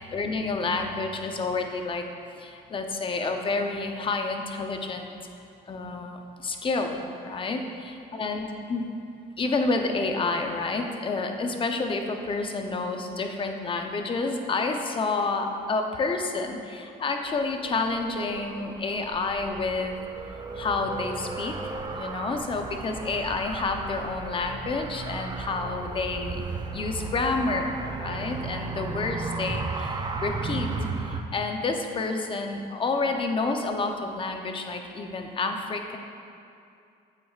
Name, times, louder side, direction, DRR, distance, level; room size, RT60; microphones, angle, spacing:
voice 1, 0.0-2.0 2.3-5.1 5.7-8.8 9.4-20.0 20.5-21.6 21.9-26.4 26.7-30.7 31.0-36.0, left 3 dB, 30° left, 4 dB, 0.7 m, -29 dB
Car, 17.2-31.2, right 4 dB, 25° right, 0.5 m, -35 dB
8.2 x 8.0 x 2.4 m, 2.5 s
cardioid pair, 110°, 17 cm